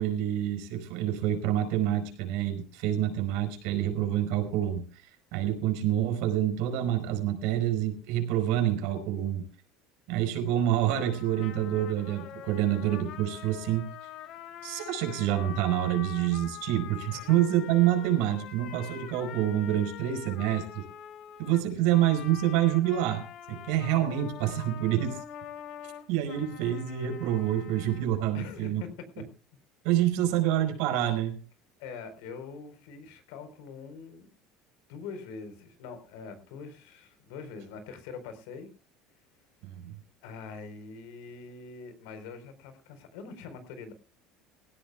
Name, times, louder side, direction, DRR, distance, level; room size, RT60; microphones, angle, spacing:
voice 1, 0.0-5.0 5.3-9.5 10.1-13.9 14.6-20.8 21.4-25.2 26.1-28.8 29.8-31.4 39.6-39.9, right 12 dB, 75° right, 6 dB, 4.7 m, -27 dB
sound 1, 10.9-28.1, left 10 dB, 55° left, 2.9 m, -45 dB
voice 2, 28.3-28.9 31.8-34.3 34.9-38.7 40.2-43.9, left 5 dB, 80° left, 9 dB, 4.3 m, -43 dB
20.0 x 16.5 x 2.4 m, 0.35 s
cardioid pair, 130°, 0 cm